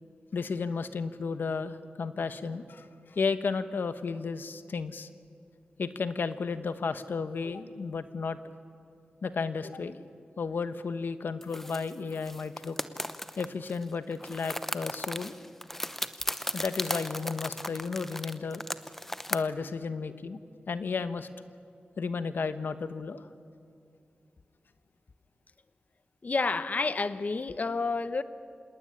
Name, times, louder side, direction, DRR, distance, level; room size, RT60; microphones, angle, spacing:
voice 1, 0.3-5.1 5.8-8.4 9.2-10.0 10.4-12.8 13.4-15.4 16.5-18.6 19.3-20.4 20.7-21.3 22.0-23.3, left 5 dB, 80° left, 11 dB, 1.1 m, -33 dB
sound 1, 11.4-13.8 14.1-19.4, left 1 dB, 10° left, 0.8 m, -36 dB
voice 2, 26.2-28.2, left 3 dB, 50° left, 12 dB, 0.9 m, -29 dB
26.5 x 18.5 x 9.9 m, 2.4 s
wide cardioid pair, 85°, 3 cm